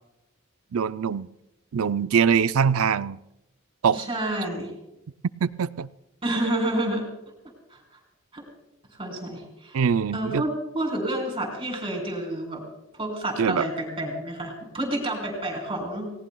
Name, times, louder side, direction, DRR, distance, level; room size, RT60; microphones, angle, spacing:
voice 1, 0.7-1.3 1.7-3.2 3.8-4.0 5.4-5.9 9.7-10.4 13.4-13.7, right 6 dB, 80° right, 15 dB, 0.5 m, -23 dB
voice 2, 3.9-4.7 6.2-7.0 7.7-7.8 8.3-8.4 9.0-9.8 10.1-12.7 12.9-16.1, right 1 dB, 25° right, 1 dB, 4.0 m, -29 dB
29.5 x 18.5 x 2.3 m, 0.91 s
head